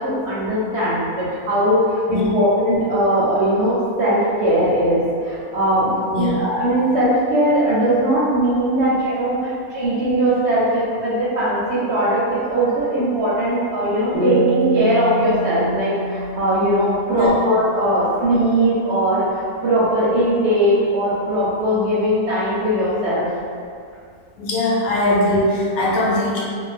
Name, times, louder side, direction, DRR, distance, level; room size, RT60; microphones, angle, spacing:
voice 1, 0.0-23.3, right 1 dB, 65° right, -8 dB, 0.7 m, -19 dB
sound 1, 14.1-17.6, right 2 dB, 55° left, 0.9 m, -25 dB
voice 2, 24.4-26.4, left 1 dB, 80° left, -4 dB, 1.0 m, -20 dB
2.5 x 2.1 x 3.2 m, 2.3 s
omnidirectional pair, 1.5 m